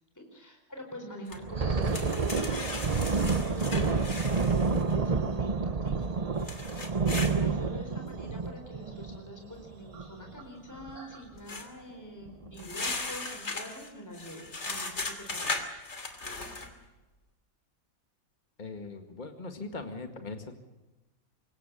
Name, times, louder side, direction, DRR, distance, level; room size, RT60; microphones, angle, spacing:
voice 1, 0.1-4.2 4.8-6.9 7.3-15.7, equal, 10° left, 3 dB, 4.3 m, -45 dB
sound 1, 1.3-1.4 1.8-4.9 6.4-7.4 11.5-11.7 12.6-16.7, left 3 dB, 50° left, 2.9 m, -37 dB
Thunder, 1.3-10.4 10.7-11.0 11.3-11.6 12.2-12.7, right 4 dB, 30° right, 0.8 m, -29 dB
sound 2, 1.6-11.3, right 2 dB, 90° right, 4.1 m, -54 dB
voice 2, 18.6-20.5, left 3 dB, 30° left, 6 dB, 2.1 m, -40 dB
25.5 x 22.5 x 6.9 m, 1.1 s
omnidirectional pair, 1.5 m